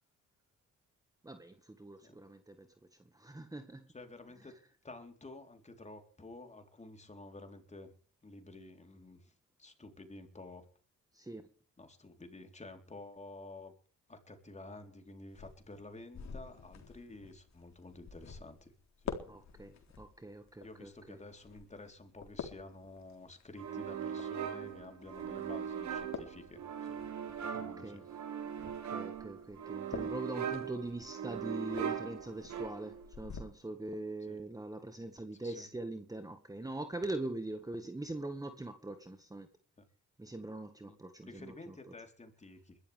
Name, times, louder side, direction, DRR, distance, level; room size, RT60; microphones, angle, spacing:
voice 1, 1.2-2.7 3.1-3.9 4.4-4.6 11.1-11.5 19.3-21.2 27.5-28.1 28.6-39.5 40.2-41.9, right 2 dB, 10° right, 1.8 m, -43 dB
voice 2, 3.9-4.5 4.8-7.9 8.2-9.2 9.6-10.6 11.8-13.7 14.1-18.7 19.0-19.2 20.6-26.6 26.9-28.0 29.5-29.6 34.3-34.4 35.4-35.7 40.8-41.0 41.2-42.8, left 2 dB, 25° left, 4.0 m, -51 dB
sound 1, 15.3-33.4, left 6 dB, 65° left, 3.9 m, -50 dB
sound 2, 23.6-33.1, right 8 dB, 70° right, 3.8 m, -40 dB
21.5 x 13.0 x 3.5 m
cardioid pair, 90°, 30 cm